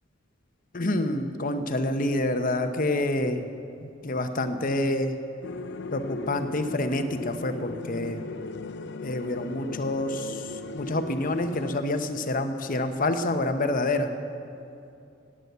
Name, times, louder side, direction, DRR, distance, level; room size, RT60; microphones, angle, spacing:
voice 1, 0.7-3.5 3.8-5.1 5.9-8.2 9.0-14.1, left 1 dB, 45° left, 8 dB, 0.9 m, -27 dB
sound 1, 5.4-11.8, left 3 dB, 60° left, 0.6 m, -37 dB
18.5 x 8.8 x 6.8 m, 2.6 s
head